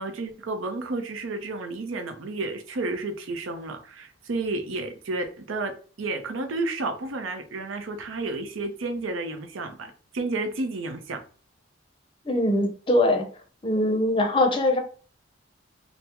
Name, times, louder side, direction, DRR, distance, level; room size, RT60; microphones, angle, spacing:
voice 1, 0.0-11.2, right 2 dB, 90° right, 0.6 m, -31 dB
voice 2, 12.2-13.3 13.6-14.8, left 1 dB, 25° left, 0.5 m, -22 dB
3.4 x 2.0 x 2.9 m
head